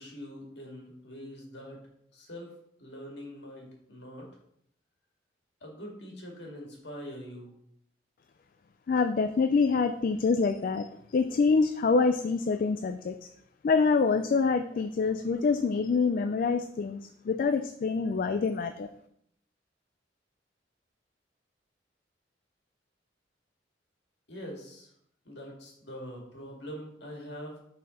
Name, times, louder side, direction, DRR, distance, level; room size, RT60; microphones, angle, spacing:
voice 1, 0.0-1.8 2.1-2.5 2.8-4.3 5.6-7.5 24.3-24.9 25.2-27.6, equal, 65° left, 0 dB, 2.0 m, -43 dB
voice 2, 8.9-10.9 11.1-13.1 13.6-18.9, left 4 dB, 50° left, 9 dB, 0.3 m, -26 dB
6.7 x 4.2 x 5.0 m, 0.72 s
head